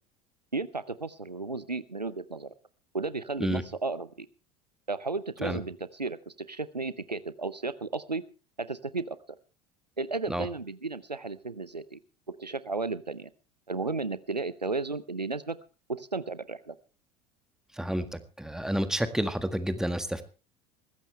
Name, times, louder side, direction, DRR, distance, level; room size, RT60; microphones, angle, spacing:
voice 1, 0.5-2.5 2.9-4.3 4.9-8.2 8.6-9.2 10.0-12.0 12.4-13.3 13.7-15.6 15.9-16.7, right 3 dB, 90° right, 16 dB, 0.7 m, -34 dB
voice 2, 17.8-20.2, equal, 5° right, 10 dB, 1.7 m, -30 dB
20.0 x 15.5 x 3.3 m, 0.35 s
figure-of-eight pair, 75°, 21 cm